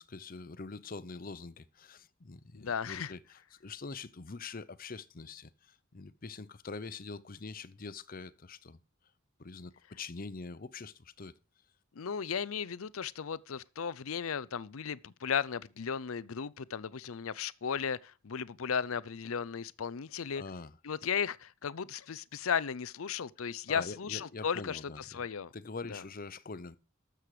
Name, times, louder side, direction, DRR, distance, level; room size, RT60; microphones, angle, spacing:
voice 1, 0.0-8.8 9.4-11.3 20.3-20.8 23.7-25.2 25.5-26.8, left 4 dB, 45° left, 0.7 m, -44 dB
voice 2, 2.5-3.1 12.0-20.4 20.8-25.5 25.9-26.0, left 7 dB, 80° left, 0.6 m, -35 dB
12.5 x 7.7 x 4.9 m
head